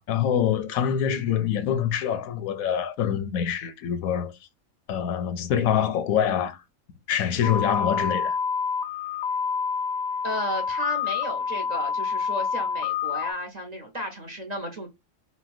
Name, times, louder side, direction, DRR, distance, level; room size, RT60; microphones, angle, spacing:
voice 1, 0.0-4.3 4.9-6.6 7.1-8.4, left 9 dB, 85° left, 1.1 m, -25 dB
sound 1, 7.4-13.3, left 6 dB, 65° left, 0.8 m, -28 dB
voice 2, 10.2-14.9, equal, 40° right, 0.7 m, -33 dB
4.2 x 2.2 x 2.4 m
omnidirectional pair, 1.4 m